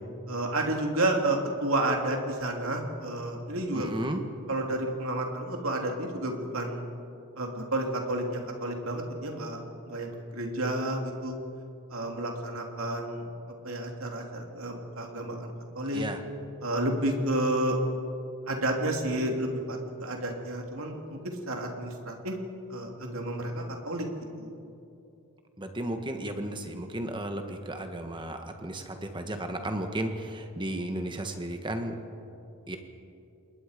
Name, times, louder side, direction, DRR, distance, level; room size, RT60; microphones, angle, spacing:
voice 1, 0.3-3.9 4.5-6.8 7.4-9.6 9.9-11.4 11.9-13.3 13.6-16.0 16.6-17.8 18.5-21.2 21.5-22.4 22.7-24.1 24.4-24.5, right 1 dB, 70° right, 2 dB, 3.1 m, -31 dB
voice 2, 3.7-4.2 15.9-16.2 25.6-31.9 32.7-32.8, right 1 dB, 20° right, 6 dB, 1.5 m, -34 dB
27.5 x 21.0 x 5.2 m, 2.6 s
head